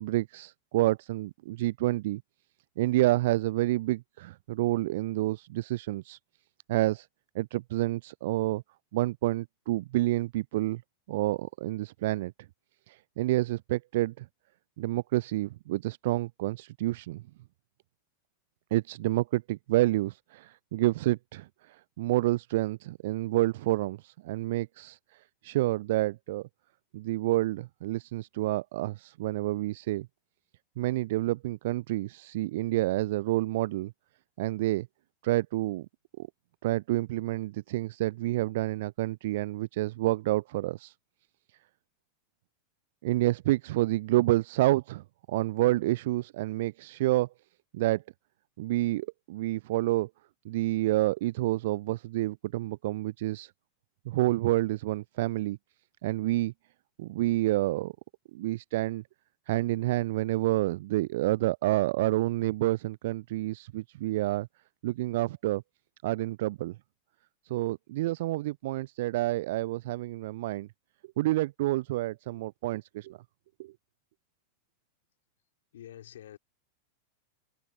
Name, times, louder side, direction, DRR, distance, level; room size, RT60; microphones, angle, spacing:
voice 1, 0.0-2.2 2.8-6.2 6.7-7.1 7.3-8.6 8.9-10.8 11.1-12.3 12.9-14.3 14.8-17.2 18.7-26.5 26.9-30.1 30.8-33.9 34.4-34.9 35.2-35.9 36.2-36.3 36.6-40.9 43.0-47.3 47.7-48.0 48.6-50.1 50.4-53.5 54.1-55.6 56.0-56.5 57.0-57.9 58.3-59.0 59.5-64.5 64.8-65.6 66.0-66.8 67.5-70.7 71.2-73.2 73.6-73.7, right 17 dB, 55° right, 0.3 m, -29 dB
voice 2, 75.7-76.4, left 11 dB, 60° left, 4.6 m, -47 dB
figure-of-eight pair, 90°, 0 cm